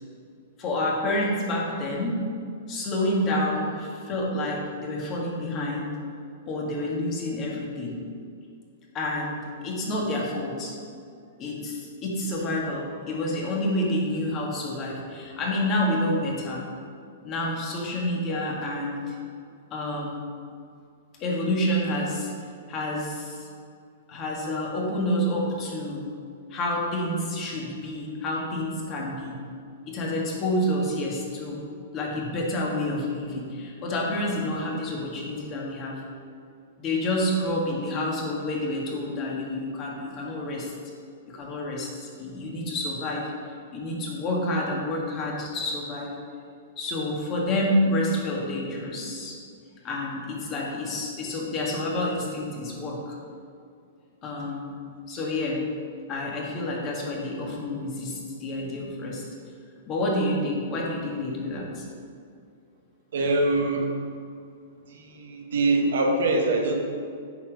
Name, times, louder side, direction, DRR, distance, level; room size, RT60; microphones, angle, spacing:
voice 1, 0.6-2.2 2.7-6.0 6.5-8.0 8.9-11.0 11.4-16.6 17.2-19.2 19.7-20.3 21.2-22.3 22.7-23.5 24.1-26.1 26.5-29.4 29.9-31.6 31.9-36.0 36.8-40.7 41.3-43.3 43.7-46.2 46.8-49.4 49.8-53.2 54.2-54.8 55.1-55.6 56.1-59.2 59.9-61.8, left 1 dB, 30° left, -2 dB, 1.9 m, -28 dB
voice 2, 63.1-63.9 64.9-66.8, right 2 dB, 75° right, 2 dB, 1.2 m, -24 dB
8.4 x 4.5 x 5.2 m, 2.4 s
hypercardioid pair, 130°, 0 cm